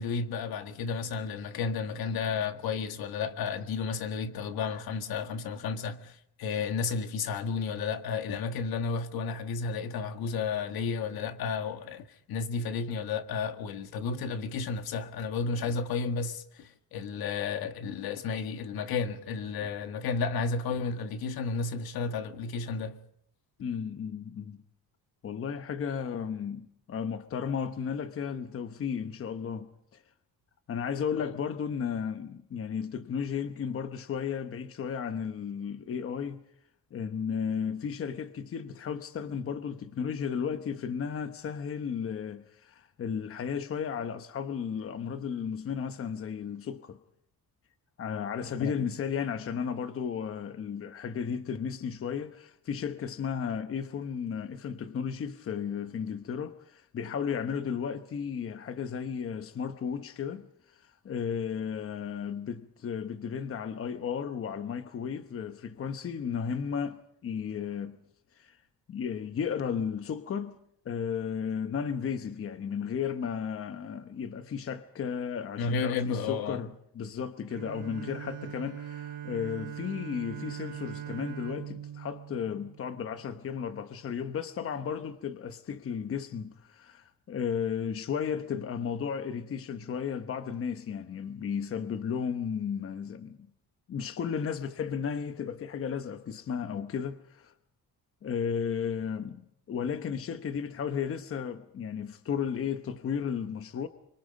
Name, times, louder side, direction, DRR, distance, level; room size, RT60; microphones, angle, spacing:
voice 1, 0.0-23.0 31.1-31.2 48.6-48.8 75.6-76.6, left 5 dB, 80° left, 1.8 m, -32 dB
voice 2, 23.6-24.6 25.2-30.0 30.7-36.4 36.9-47.0 48.0-68.0 68.3-68.6 68.9-70.6 70.8-93.5 93.9-97.5 98.2-103.9, left 7 dB, 35° left, 1.0 m, -34 dB
Bowed string instrument, 77.5-83.4, right 10 dB, 65° right, 4.1 m, -41 dB
26.0 x 24.5 x 5.3 m
cardioid pair, 175°, 36 cm